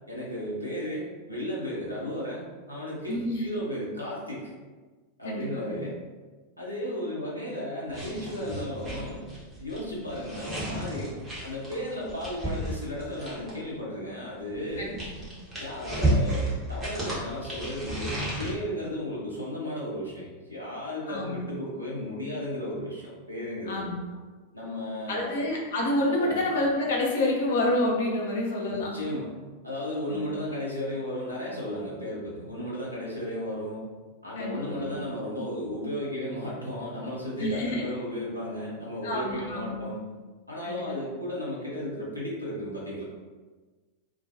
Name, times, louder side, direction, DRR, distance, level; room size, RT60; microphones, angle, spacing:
voice 1, 0.1-4.5 5.2-6.0 6.6-9.3 9.6-11.1 11.4-14.9 15.5-23.9 24.5-25.4 26.2-26.4 28.7-29.4 29.6-33.8 34.2-40.1 40.5-43.0, equal, 90° right, -6 dB, 0.6 m, -34 dB
voice 2, 3.1-3.6 5.2-5.8 14.8-15.0 21.1-21.4 23.7-24.0 25.1-29.1 30.1-30.3 34.4-35.0 37.4-37.8 39.0-39.8 40.6-40.9, left 1 dB, 60° left, -1 dB, 0.6 m, -28 dB
sound 1, 7.9-13.7 14.5-18.5, right 1 dB, 15° right, 1.0 m, -32 dB
2.3 x 2.2 x 2.7 m, 1.3 s
figure-of-eight pair, 90°, 0 cm